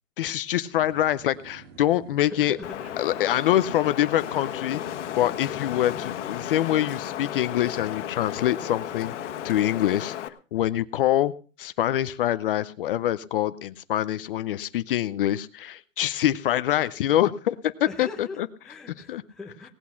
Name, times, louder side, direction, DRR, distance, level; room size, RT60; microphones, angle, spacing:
voice 1, 0.2-2.6 3.0-4.8 5.2-11.3 11.6-18.5 19.1-19.2, left 12 dB, 45° left, 14 dB, 0.6 m, -25 dB
sound 1, 0.7-9.6, right 5 dB, 55° right, 2.4 m, -49 dB
voice 2, 2.2-2.8 17.8-19.7, left 3 dB, ahead, 0 dB, 0.7 m, -40 dB
Wind, 2.6-10.3, left 11 dB, 65° left, 1.5 m, -34 dB
18.5 x 8.5 x 5.6 m, 0.37 s
supercardioid pair, 175°, 37 cm